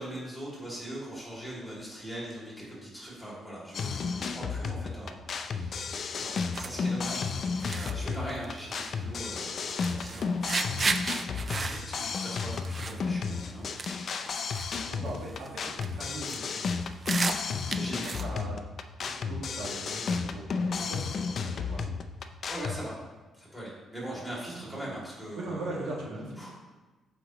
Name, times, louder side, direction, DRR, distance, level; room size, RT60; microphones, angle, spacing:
voice 1, 0.0-7.3 7.6-10.4 11.3-13.7 13.9-14.2 15.2-15.4 17.7-18.3 22.5-22.9 23.3-25.9 26.4-26.5, right 1 dB, 5° left, -6 dB, 2.4 m, -41 dB
sound 1, 3.7-22.8, left 5 dB, 40° left, 0.5 m, -33 dB
sound 2, 6.5-6.7 7.1-7.2 7.6-7.9 8.3-8.9 9.2-9.4 9.8-13.0 13.3-13.5 13.8-14.0 14.2-14.7 15.0-15.5 15.7-16.4 16.8-18.3, right 4 dB, 25° right, 0.4 m, -34 dB
voice 2, 14.9-15.6 15.9-16.8 17.8-18.6 19.0-21.9 24.5-24.9 25.3-26.5, right 2 dB, 75° right, -4 dB, 2.2 m, -40 dB
14.0 x 5.0 x 3.0 m, 1.2 s
cardioid pair, 165°, 0 cm